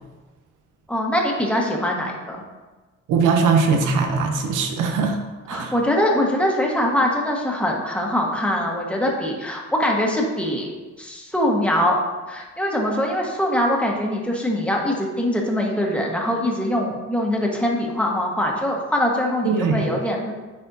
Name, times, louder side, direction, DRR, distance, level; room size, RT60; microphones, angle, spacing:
voice 1, 0.9-2.4 5.5-10.7 11.0-12.0 12.3-20.3, left 1 dB, 5° left, -1 dB, 1.4 m, -23 dB
voice 2, 3.1-5.2 5.5-5.7 19.4-19.8, right 5 dB, 85° right, 4 dB, 0.9 m, -20 dB
9.7 x 4.2 x 2.7 m, 1.2 s
cardioid pair, 90°, 30 cm